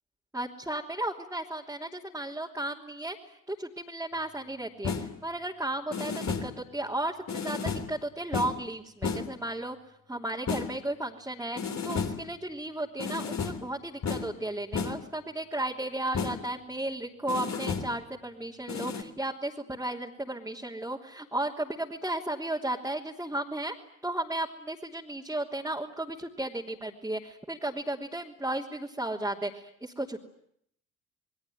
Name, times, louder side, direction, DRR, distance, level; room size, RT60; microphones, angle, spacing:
voice 1, 0.3-3.2 3.5-9.7 10.1-23.7 24.0-30.2, right 1 dB, 5° right, -3 dB, 3.2 m, -34 dB
sound 1, 4.8-5.2 5.9-6.6 7.3-8.0 8.3-8.7 9.0-9.4 10.5-10.8 11.6-12.3 13.0-13.7 14.0-14.4 14.7-15.1 16.1-16.5 17.3-18.0 18.7-19.0, left 5 dB, 40° left, 3.4 m, -33 dB
28.0 x 21.5 x 9.4 m, 0.72 s
figure-of-eight pair, 50°, 41 cm